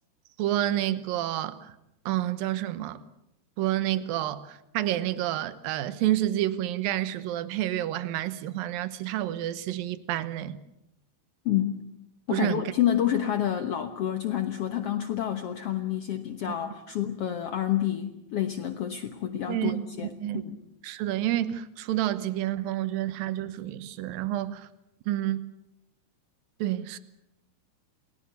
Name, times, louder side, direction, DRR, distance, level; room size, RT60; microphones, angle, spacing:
voice 1, 0.4-1.7 2.1-3.0 3.6-10.6 12.3-12.7 19.5-19.8 20.2-20.4 20.8-24.7 25.1-25.4 26.6-27.0, right 13 dB, 75° right, 2.7 m, -29 dB
voice 2, 11.4-11.8 12.3-20.6, left 11 dB, 70° left, 1.4 m, -29 dB
29.0 x 19.0 x 8.2 m
omnidirectional pair, 4.5 m